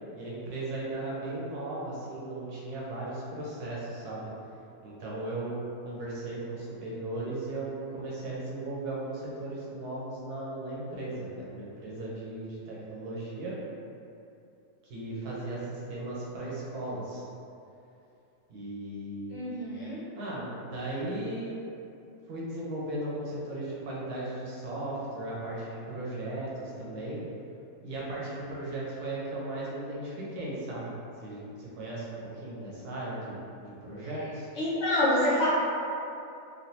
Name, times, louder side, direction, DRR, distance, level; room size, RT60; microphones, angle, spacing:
voice 1, 0.1-4.3 4.8-13.6 14.8-17.2 18.5-19.4 20.1-21.7 22.3-27.2 27.8-30.9 31.2-34.5, right 2 dB, 85° right, -6 dB, 1.3 m, -36 dB
voice 2, 19.3-20.0 34.6-35.5, left 1 dB, 65° left, -7 dB, 0.8 m, -27 dB
3.2 x 2.6 x 2.7 m, 2.7 s
omnidirectional pair, 1.6 m